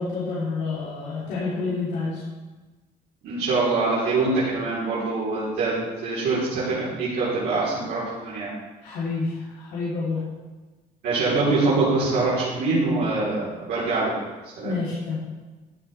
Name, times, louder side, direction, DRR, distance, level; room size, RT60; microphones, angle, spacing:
voice 1, 0.0-2.2 8.8-10.2 14.6-15.2, left 4 dB, 80° left, -10 dB, 3.5 m, -28 dB
voice 2, 3.2-5.7 6.0-8.5 11.0-14.1 14.6-14.7, right 3 dB, 75° right, -10 dB, 3.8 m, -24 dB
15.0 x 7.9 x 3.5 m, 1.2 s
cardioid pair, 110°, 17 cm